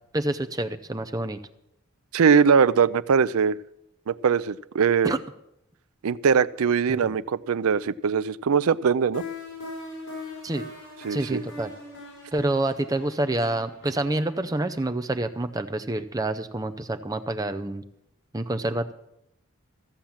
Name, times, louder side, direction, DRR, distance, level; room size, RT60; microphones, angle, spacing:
voice 1, 0.1-1.4 5.0-5.2 6.9-7.1 10.4-10.6 11.1-11.7 12.3-17.8 18.3-18.9, right 2 dB, 15° right, 9 dB, 0.5 m, -27 dB
voice 2, 2.1-3.6 4.1-5.1 6.0-9.2 11.0-11.4, right 6 dB, 85° right, 18 dB, 0.4 m, -21 dB
sound 1, 9.1-15.9, left 3 dB, 75° left, 5.3 m, -41 dB
14.5 x 7.5 x 7.2 m, 0.80 s
head